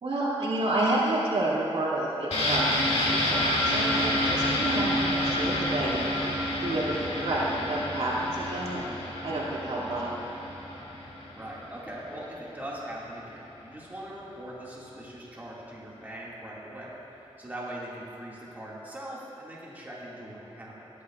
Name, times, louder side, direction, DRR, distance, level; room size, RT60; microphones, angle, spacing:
voice 1, 0.0-6.2 6.6-8.9 9.2-10.3, right 1 dB, 70° right, -7 dB, 2.3 m, -30 dB
sound 1, 2.3-11.9 12.2-12.3, left 1 dB, 75° left, 1.8 m, -28 dB
voice 2, 11.3-20.9, right 1 dB, 15° right, -6 dB, 2.0 m, -41 dB
19.0 x 8.1 x 2.4 m, 2.9 s
wide cardioid pair, 130°, 10 cm